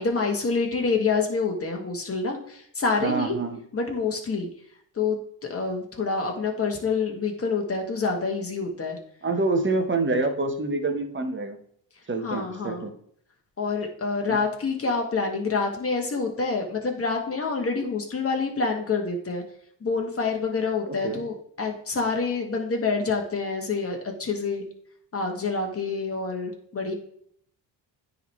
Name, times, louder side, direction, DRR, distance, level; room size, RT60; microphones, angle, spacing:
voice 1, 0.0-3.4 3.7-4.5 4.9-5.2 5.5-9.0 12.2-12.9 13.6-19.4 19.8-24.6 25.1-26.9, left 4 dB, 30° left, 2 dB, 1.9 m, -27 dB
voice 2, 3.0-3.6 9.2-11.6 12.1-12.9 14.3-14.4 21.0-21.2, right 3 dB, 25° right, 5 dB, 1.3 m, -26 dB
9.8 x 4.1 x 3.2 m, 0.66 s
supercardioid pair, 75°, 46 cm